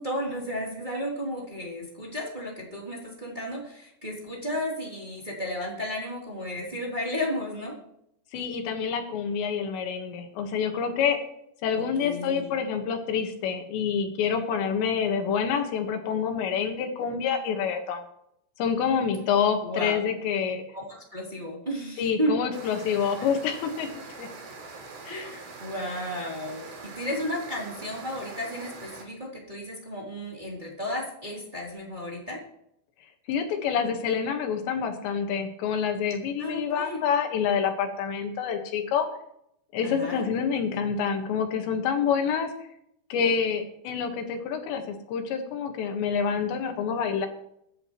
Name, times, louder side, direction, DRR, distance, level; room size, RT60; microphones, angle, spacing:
voice 1, 0.0-7.8 11.7-12.5 19.6-20.0 20.7-22.4 25.1-32.4 36.4-37.0 39.8-40.2, equal, 10° right, -3 dB, 2.9 m, -33 dB
voice 2, 8.3-11.2 11.6-18.0 18.6-20.6 22.0-24.3 25.1-25.3 33.3-39.1 39.7-42.5 43.1-47.3, left 7 dB, 90° left, 5 dB, 3.9 m, -27 dB
sound 1, 22.5-29.0, right 4 dB, 80° right, 4.9 m, -43 dB
23.0 x 10.0 x 3.1 m, 0.76 s
omnidirectional pair, 4.9 m